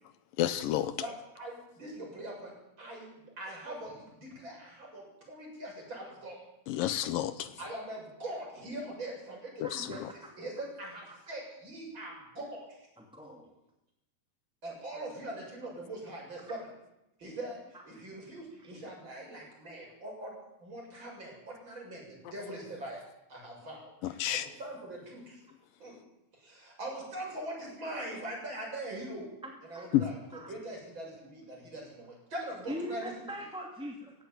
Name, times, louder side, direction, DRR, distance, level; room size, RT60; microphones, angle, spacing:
voice 1, 0.4-1.0 6.7-7.6 9.6-10.1 24.0-24.5 29.9-30.1, left 13 dB, 80° left, 13 dB, 2.5 m, -30 dB
voice 2, 1.0-3.1 3.4-6.5 7.6-10.0 10.4-12.8 14.6-16.7 17.2-23.0 23.3-25.4 25.8-26.0 26.4-29.3 29.6-33.1, right 1 dB, 30° right, -2 dB, 7.8 m, -42 dB
voice 3, 9.6-10.0 13.0-13.5 18.6-18.7 29.4-29.9 30.3-30.5 32.7-34.1, equal, ahead, 0 dB, 1.7 m, -41 dB
17.0 x 16.5 x 9.6 m, 0.88 s
omnidirectional pair, 4.1 m